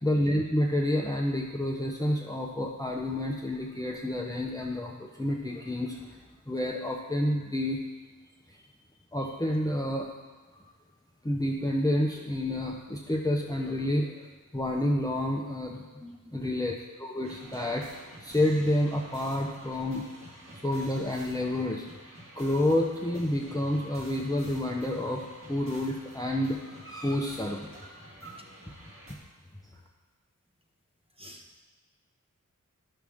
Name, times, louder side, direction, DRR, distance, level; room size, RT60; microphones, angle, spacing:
voice 1, 0.0-6.2 6.5-7.8 9.1-10.1 10.5-10.6 11.2-14.2 14.5-15.8 16.3-20.0 20.6-21.9 22.4-27.9 28.2-28.4, left 1 dB, 10° left, -1 dB, 0.7 m, -29 dB
sound 1, 17.2-29.1, right 1 dB, 40° right, 2.4 m, -49 dB
voice 2, 31.2-31.6, left 1 dB, 15° right, 1 dB, 1.2 m, -48 dB
11.5 x 6.3 x 3.5 m, 1.3 s
wide cardioid pair, 55°, 33 cm